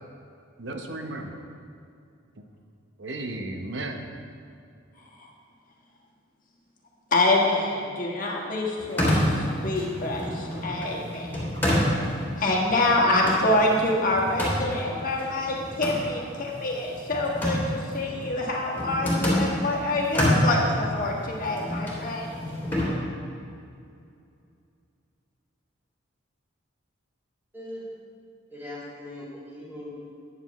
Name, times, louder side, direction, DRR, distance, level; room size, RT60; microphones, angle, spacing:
voice 1, 0.6-1.4 2.4-2.5 3.0-4.1, right 2 dB, 60° right, 4 dB, 0.9 m, -34 dB
voice 2, 7.1-11.3 12.4-22.3, left 2 dB, 40° left, -2 dB, 1.5 m, -26 dB
sound 1, 8.8-19.6 20.0-22.9, equal, 10° left, 2.4 m, -28 dB
voice 3, 28.5-30.0, left 1 dB, 10° right, -8 dB, 2.7 m, -40 dB
13.0 x 9.7 x 3.1 m, 2.5 s
head